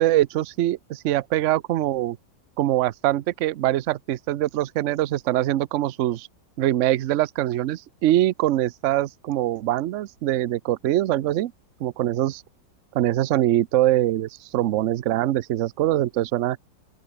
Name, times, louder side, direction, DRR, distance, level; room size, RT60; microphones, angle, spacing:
voice 1, 0.0-2.2 2.6-6.3 6.6-11.5 11.8-12.4 12.9-16.6, right 14 dB, 65° right, 0.7 m, -23 dB
open air
omnidirectional pair, 2.0 m